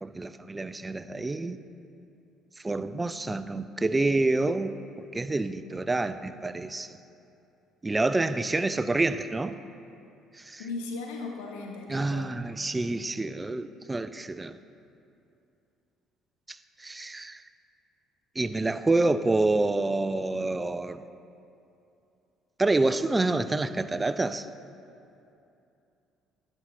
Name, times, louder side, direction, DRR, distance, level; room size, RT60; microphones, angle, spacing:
voice 1, 0.0-1.6 2.6-4.7 5.1-6.9 7.8-9.6 10.4-10.6 11.9-14.6 16.5-17.4 18.4-21.0 22.6-24.5, right 2 dB, 20° right, 12 dB, 0.3 m, -27 dB
voice 2, 10.6-12.4, left 3 dB, 80° left, 1 dB, 0.8 m, -37 dB
10.5 x 5.5 x 3.0 m, 2.7 s
hypercardioid pair, 60°, 0 cm